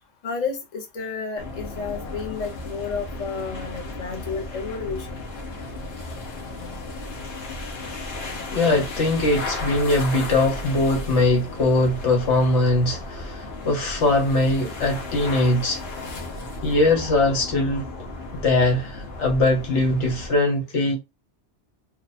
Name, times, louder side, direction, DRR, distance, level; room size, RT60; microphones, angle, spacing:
voice 1, 0.2-5.2, left 5 dB, 40° left, 1.0 m, -31 dB
sound 1, 1.4-20.4, left 2 dB, 60° left, 1.2 m, -34 dB
voice 2, 8.5-15.8 16.6-17.8 18.4-21.0, left 2 dB, 90° left, 1.5 m, -21 dB
3.0 x 2.5 x 4.1 m
omnidirectional pair, 1.2 m